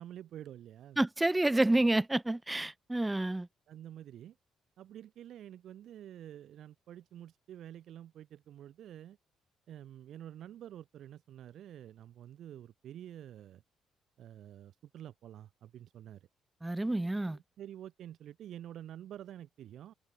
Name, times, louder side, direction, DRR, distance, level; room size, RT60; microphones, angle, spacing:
voice 1, 0.0-1.0 3.7-4.4 4.8-9.2 9.7-13.6 14.2-16.3 17.3-19.9, right 11 dB, 75° right, 2.2 m, -48 dB
voice 2, 1.0-3.5 16.6-17.4, right 2 dB, 10° right, 1.1 m, -29 dB
cardioid pair, 90°, 0 cm